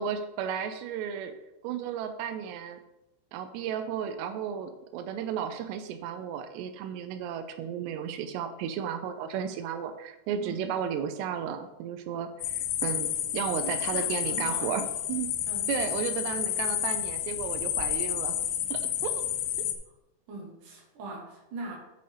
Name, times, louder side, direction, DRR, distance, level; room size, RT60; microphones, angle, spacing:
voice 1, 0.0-1.3 1.6-2.8 3.3-15.3 15.7-18.4 18.7-19.2 19.6-19.7, right 8 dB, 90° right, 7 dB, 2.7 m, -34 dB
sound 1, 12.4-19.7, left 11 dB, 80° left, 2.6 m, -30 dB
voice 2, 13.6-14.8 15.5-15.7 20.3-21.8, right 2 dB, 60° right, 0 dB, 2.4 m, -41 dB
9.2 x 7.0 x 3.3 m, 0.95 s
omnidirectional pair, 4.8 m